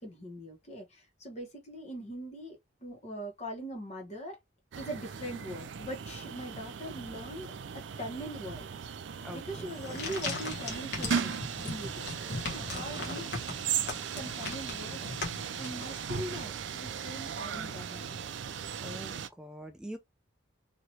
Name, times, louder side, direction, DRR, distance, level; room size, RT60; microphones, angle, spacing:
voice 1, 0.0-4.4 4.8-8.7 9.3-12.1 12.4-13.3 14.1-15.1 15.6-18.2, equal, 35° left, 1.4 m, -41 dB
sound 1, 4.7-19.3, right 7 dB, 65° right, 0.4 m, -37 dB
voice 2, 9.2-10.0 18.8-20.0, equal, 5° right, 0.4 m, -44 dB
sound 2, 9.7-16.2, left 3 dB, 55° left, 1.1 m, -39 dB
3.1 x 2.9 x 2.7 m
head